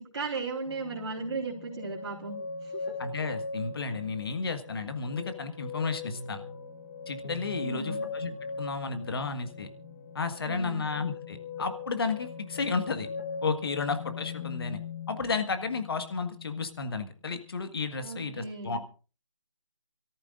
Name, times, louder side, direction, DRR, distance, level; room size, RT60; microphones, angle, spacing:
voice 1, 0.0-2.9 7.6-8.0 10.5-10.8 18.0-18.8, right 4 dB, 60° right, -4 dB, 4.0 m, -36 dB
sound 1, 0.7-16.9 17.3-18.0, left 4 dB, 25° left, 1.1 m, -40 dB
voice 2, 3.0-6.4 7.1-9.7 10.1-13.1 13.4-14.8 15.1-18.8, left 4 dB, 50° left, 9 dB, 1.7 m, -32 dB
28.0 x 14.0 x 2.5 m, 0.35 s
figure-of-eight pair, 165°, 16 cm